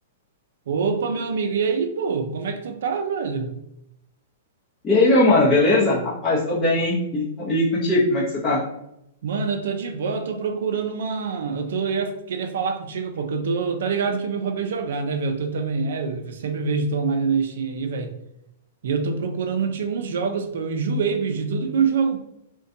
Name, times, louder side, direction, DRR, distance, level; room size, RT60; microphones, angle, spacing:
voice 1, 0.7-3.6 6.3-6.4 9.2-18.2 18.8-22.2, right 5 dB, 75° right, 7 dB, 0.4 m, -25 dB
voice 2, 4.8-8.6, left 2 dB, 20° left, -9 dB, 0.6 m, -19 dB
2.5 x 2.1 x 2.6 m, 0.82 s
hypercardioid pair, 155°, 0 cm